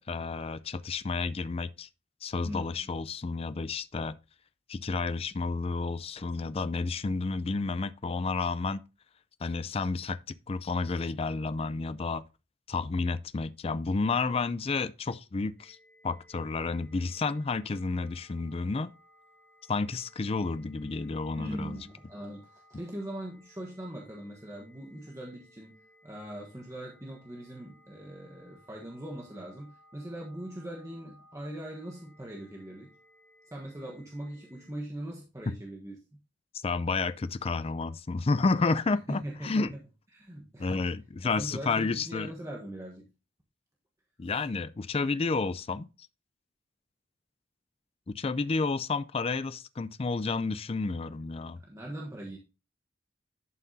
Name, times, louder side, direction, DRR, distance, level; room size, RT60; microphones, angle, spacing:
voice 1, 0.0-1.9 2.2-4.2 4.7-8.8 9.4-12.2 12.7-15.8 16.0-18.9 19.7-21.9 36.6-39.7 40.6-42.3 44.2-45.9 48.1-51.6, left 4 dB, 30° left, 0.4 m, -31 dB
sound 1, 15.6-34.7, equal, 10° left, 2.6 m, -61 dB
voice 2, 21.3-25.8 26.0-32.9 33.5-35.9 39.1-39.7 40.1-40.8 41.2-43.1 51.6-52.4, right 1 dB, 15° right, 1.2 m, -41 dB
11.0 x 5.7 x 2.7 m
head